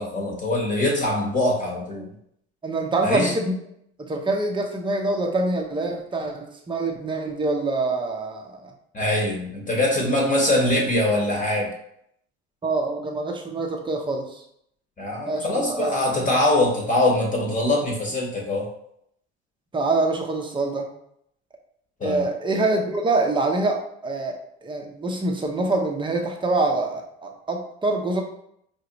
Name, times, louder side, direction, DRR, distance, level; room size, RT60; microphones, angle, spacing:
voice 1, 0.0-2.1 3.0-3.3 8.9-11.7 15.0-18.7 22.0-22.2, left 1 dB, 25° left, -1 dB, 1.2 m, -23 dB
voice 2, 2.6-3.5 4.0-8.7 10.0-10.1 10.6-10.8 12.6-14.4 15.3-16.0 19.7-20.9 22.0-28.2, right 2 dB, 15° right, 2 dB, 0.8 m, -25 dB
4.8 x 2.5 x 2.9 m, 0.72 s
hypercardioid pair, 75°, 33 cm